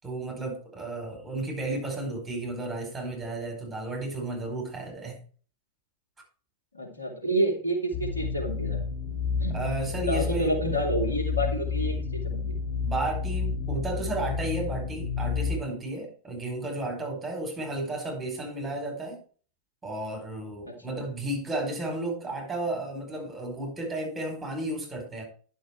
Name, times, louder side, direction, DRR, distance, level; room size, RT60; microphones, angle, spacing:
voice 1, 0.0-5.2 9.5-10.5 12.8-19.2 19.8-25.2, right 2 dB, 15° right, 1 dB, 4.8 m, -33 dB
voice 2, 6.7-8.8 9.4-9.6 10.0-12.5 20.7-20.8, right 1 dB, 85° left, 0 dB, 2.7 m, -29 dB
sound 1, 7.9-15.6, left 5 dB, 35° left, 3.6 m, -30 dB
11.0 x 6.3 x 4.5 m, 0.41 s
figure-of-eight pair, 90°, 0 cm